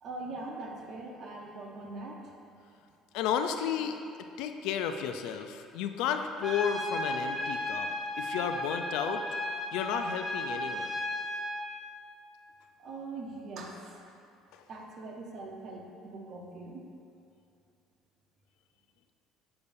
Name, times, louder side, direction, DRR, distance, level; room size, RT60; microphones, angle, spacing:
voice 1, 0.0-2.2 12.8-14.1 14.7-16.9, right 2 dB, 50° right, 0 dB, 0.9 m, -42 dB
voice 2, 3.1-4.0 4.4-7.9 8.2-9.2 9.7-10.9, left 8 dB, 80° left, 7 dB, 0.4 m, -32 dB
Trumpet, 6.4-11.6, left 1 dB, 10° left, 0.8 m, -34 dB
6.8 x 6.7 x 2.7 m, 2.6 s
cardioid pair, 115°, 0 cm